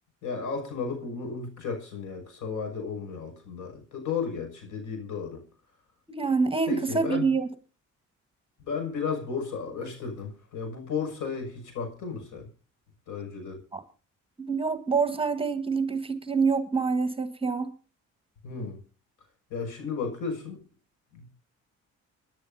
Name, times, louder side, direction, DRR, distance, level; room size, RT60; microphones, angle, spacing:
voice 1, 0.2-5.4 6.7-7.3 8.6-12.5 13.1-13.6 18.4-18.8 19.5-20.6 21.1-21.2, left 5 dB, 75° left, 6.4 m, -34 dB
voice 2, 6.1-7.5 13.7-13.8 14.4-17.7, right 4 dB, 20° right, 1.5 m, -26 dB
28.0 x 10.5 x 2.7 m
cardioid pair, 90°, 30 cm